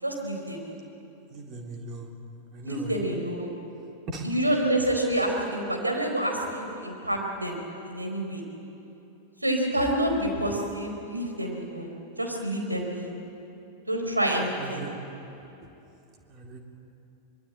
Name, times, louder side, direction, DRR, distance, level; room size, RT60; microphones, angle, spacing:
voice 1, 0.0-0.6 2.6-3.5 4.2-7.6 7.9-8.4 9.4-11.9 12.2-13.1 13.9-14.8, right 1 dB, 85° right, 2 dB, 4.5 m, -28 dB
voice 2, 1.3-2.1 2.5-3.0 4.1-4.3 14.6-15.0 16.3-16.6, right 3 dB, 35° right, 1 dB, 3.8 m, -38 dB
24.5 x 23.0 x 9.1 m, 2.9 s
figure-of-eight pair, 90°, 0 cm